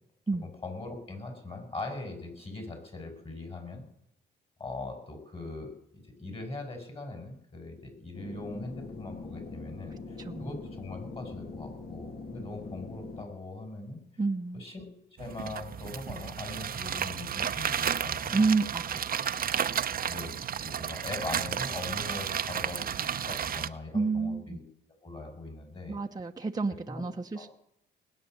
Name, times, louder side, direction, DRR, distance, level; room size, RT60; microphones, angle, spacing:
voice 1, 0.4-3.8 4.6-14.0 14.5-14.9 15.2-18.5 20.1-24.6 25.0-26.0 26.7-27.0 27.3-27.5, left 2 dB, 30° left, 5 dB, 6.1 m, -41 dB
sound 1, 8.1-13.2, left 3 dB, 50° left, 2.4 m, -42 dB
voice 2, 10.2-10.6 14.2-14.6 18.3-19.2 23.9-24.6 25.9-27.5, right 4 dB, 20° right, 2 dB, 1.0 m, -29 dB
sound 2, 15.2-23.7, right 8 dB, 45° right, 0.8 m, -32 dB
20.0 x 9.2 x 7.8 m, 0.75 s
cardioid pair, 90°, 20 cm